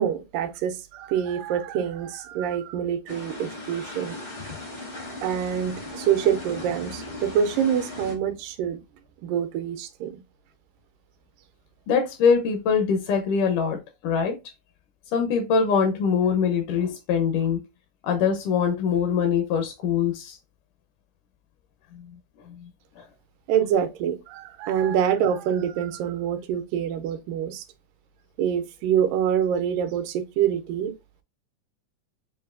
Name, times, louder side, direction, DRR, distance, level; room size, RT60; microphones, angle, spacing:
voice 1, 0.0-4.2 5.2-8.8 9.2-10.2 23.5-27.6 28.4-30.9, right 9 dB, 85° right, 2.3 m, -26 dB
sound 1, 3.1-8.1, left 2 dB, 60° left, 0.5 m, -38 dB
voice 2, 11.9-14.4 15.1-17.6 18.0-20.4 22.5-22.7 23.0-23.1, left 6 dB, 80° left, 2.2 m, -23 dB
6.8 x 2.5 x 2.5 m
omnidirectional pair, 3.8 m